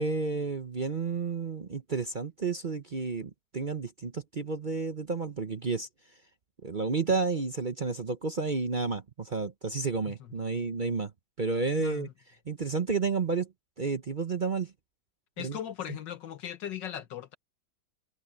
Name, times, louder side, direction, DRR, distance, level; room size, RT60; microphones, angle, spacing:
voice 1, 0.0-5.9 6.6-11.1 11.4-12.1 12.5-13.5 13.8-14.7 15.4-15.6, right 4 dB, 40° right, 0.7 m, -31 dB
voice 2, 11.8-12.1 15.4-17.3, left 10 dB, 90° left, 1.9 m, -38 dB
open air
omnidirectional pair, 1.9 m